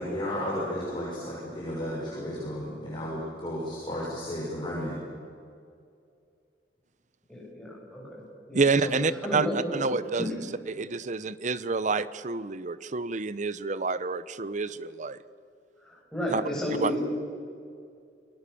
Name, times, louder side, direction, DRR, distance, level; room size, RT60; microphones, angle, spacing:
voice 1, 0.0-4.9, equal, 30° left, -7 dB, 6.2 m, -33 dB
voice 2, 7.3-8.2 8.5-8.9 9.2-10.4 15.8-17.0, left 1 dB, 5° left, -4 dB, 7.3 m, -32 dB
voice 3, 8.5-10.3 10.7-15.2 16.3-16.4 16.8-16.9, right 4 dB, 45° right, 15 dB, 0.8 m, -28 dB
28.0 x 20.5 x 7.0 m, 2.4 s
head